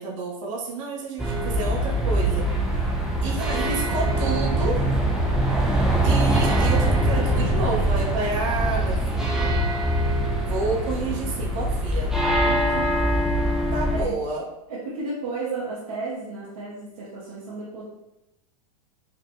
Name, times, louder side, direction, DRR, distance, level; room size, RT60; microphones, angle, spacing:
voice 1, 0.0-2.4 3.2-4.8 6.0-9.6 10.4-13.3 13.7-14.4, right 3 dB, 55° right, -2 dB, 1.1 m, -30 dB
sound 1, 1.2-14.0, right 1 dB, 5° right, 0.3 m, -23 dB
voice 2, 14.7-17.8, right 3 dB, 75° right, -9 dB, 1.2 m, -32 dB
4.8 x 2.7 x 2.3 m, 0.91 s
supercardioid pair, 145°, 19 cm